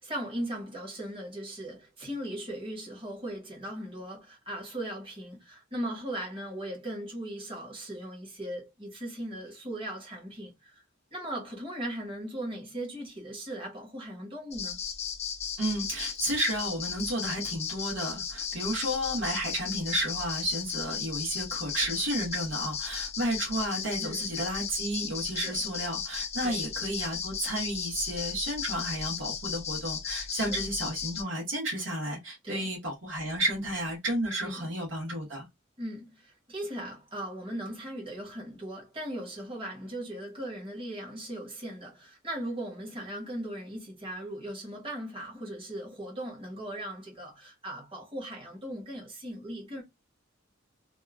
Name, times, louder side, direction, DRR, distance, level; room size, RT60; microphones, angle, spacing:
voice 1, 0.0-10.8 11.1-14.8 24.0-24.3 25.4-25.5 26.4-26.6 30.3-30.6 32.4-32.7 34.4-34.7 35.8-49.8, right 1 dB, 25° right, 1.4 m, -38 dB
sound 1, 14.5-31.2, left 7 dB, 35° left, 0.5 m, -35 dB
voice 2, 15.6-35.5, right 1 dB, 65° right, 1.2 m, -32 dB
2.8 x 2.3 x 2.3 m
head